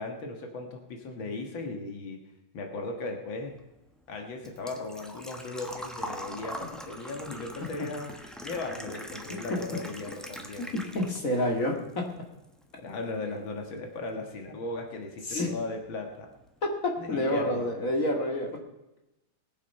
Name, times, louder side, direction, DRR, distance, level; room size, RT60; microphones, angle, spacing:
voice 1, 0.0-2.3 2.5-3.5 4.1-8.1 8.4-10.7 12.8-16.3 17.0-17.7, left 3 dB, 85° left, 3 dB, 2.4 m, -37 dB
Engine / Trickle dribble / Fill (with liquid), 3.5-11.4 11.8-12.7 13.0-13.1 15.0-15.1 15.3-15.7 16.0-16.1 16.4-16.5, equal, ahead, 0.9 m, -42 dB
voice 2, 10.9-12.1 15.3-15.6 16.6-18.6, left 1 dB, 45° left, 1 dB, 2.4 m, -28 dB
20.5 x 7.4 x 5.5 m, 0.95 s
omnidirectional pair, 2.1 m